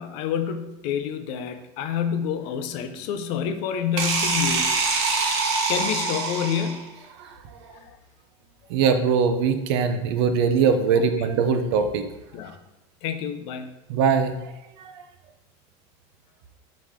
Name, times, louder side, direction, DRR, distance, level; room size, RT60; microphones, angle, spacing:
voice 1, 0.0-4.8 5.7-6.9 7.7-7.9 10.9-11.0 12.3-12.6 13.0-13.7, left 8 dB, 45° left, 9 dB, 0.5 m, -28 dB
sound 1, 4.0-6.9, right 4 dB, 90° right, 1.4 m, -24 dB
voice 2, 8.7-12.0 13.9-14.3 14.8-15.0, right 6 dB, 60° right, 8 dB, 0.7 m, -21 dB
5.5 x 4.9 x 3.6 m, 0.94 s
supercardioid pair, 175°, 15 cm